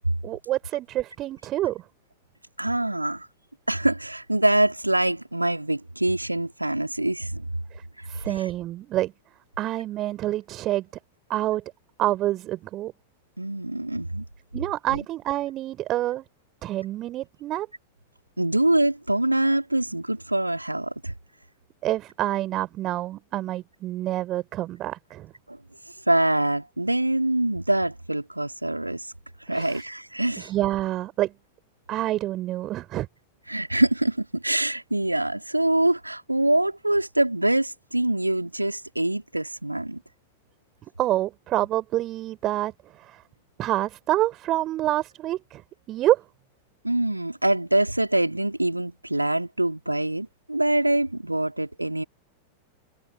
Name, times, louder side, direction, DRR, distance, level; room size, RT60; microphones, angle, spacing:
voice 1, 0.2-1.8 7.7-9.1 9.6-10.9 11.3-11.6 12.0-12.9 14.5-16.3 16.6-17.7 21.8-25.3 29.5-29.8 30.4-31.3 31.9-33.1 41.0-43.2 43.6-45.6 45.9-46.2, right 14 dB, 35° right, 4.3 m, -27 dB
voice 2, 2.6-3.3 3.7-7.5 8.0-8.5 13.4-14.2 14.9-15.0 18.4-21.1 25.5-25.6 25.9-29.1 29.4-30.5 33.5-40.0 46.8-52.0, right 1 dB, 85° right, 2.9 m, -24 dB
figure-of-eight pair, 90°, 0 cm